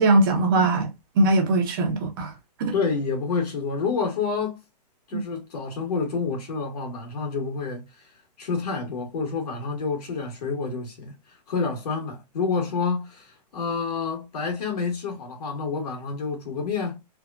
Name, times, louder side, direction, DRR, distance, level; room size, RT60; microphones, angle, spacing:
voice 1, 0.0-2.3 2.6-2.7 5.1-5.2, right 2 dB, 30° right, 0.7 m, -21 dB
voice 2, 2.7-4.6 5.1-7.8 8.4-11.1 11.5-17.0, left 5 dB, 65° left, 1.6 m, -28 dB
3.3 x 2.2 x 2.4 m
hypercardioid pair, 170°, 21 cm